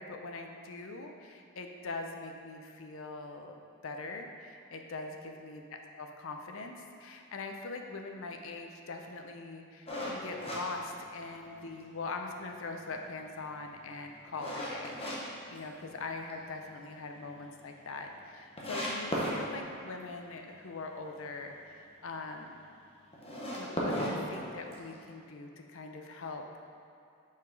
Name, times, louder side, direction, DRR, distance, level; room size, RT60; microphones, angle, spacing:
voice 1, 0.0-5.6 5.9-22.6 23.4-26.5, left 3 dB, 65° left, 4 dB, 0.6 m, -42 dB
sound 1, 9.9-11.6 12.0-12.1 12.6-15.2 15.5-16.3 16.6-16.7 17.1-17.2 17.4-17.5 18.1-18.2 18.6-19.4 23.1-25.0, equal, 30° left, 1.0 m, -36 dB
5.7 x 4.9 x 4.6 m, 2.6 s
head